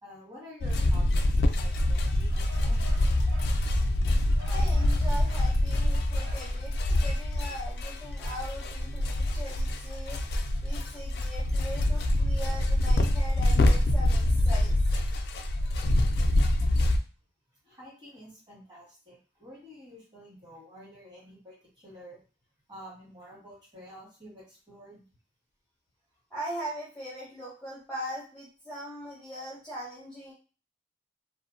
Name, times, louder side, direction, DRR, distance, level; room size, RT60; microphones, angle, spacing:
voice 1, 0.0-2.8 3.1-3.3 17.6-22.2 22.7-25.0, equal, 25° right, -6 dB, 1.5 m, -49 dB
sound 1, 0.6-17.0, left 1 dB, 60° left, 0.3 m, -25 dB
sound 2, 2.3-3.6 4.4-5.6 6.2-6.6, right 1 dB, 70° right, 0.6 m, -49 dB
voice 2, 4.5-10.2 10.6-14.8 26.3-30.3, equal, 5° left, -7 dB, 0.6 m, -40 dB
2.6 x 2.1 x 2.5 m, 0.37 s
head